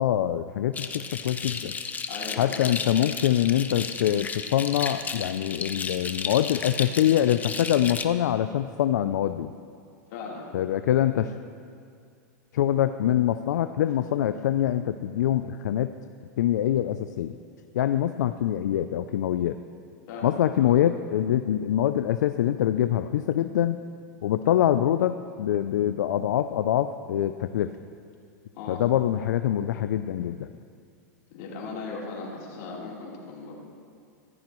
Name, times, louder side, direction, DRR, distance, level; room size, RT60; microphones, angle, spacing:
voice 1, 0.0-1.7 2.4-9.5 10.5-11.3 12.5-15.9 16.4-17.4 17.7-19.6 20.2-23.8 24.2-27.7 28.7-30.5, left 11 dB, 80° left, 10 dB, 0.4 m, -24 dB
sound 1, 0.7-8.0, left 5 dB, 15° left, 0.7 m, -34 dB
voice 2, 2.1-2.7 10.1-10.4 20.1-20.7 28.5-28.8 31.3-33.6, left 4 dB, 60° left, -4 dB, 3.6 m, -38 dB
15.0 x 14.5 x 3.1 m, 2.3 s
hypercardioid pair, 120°, 9 cm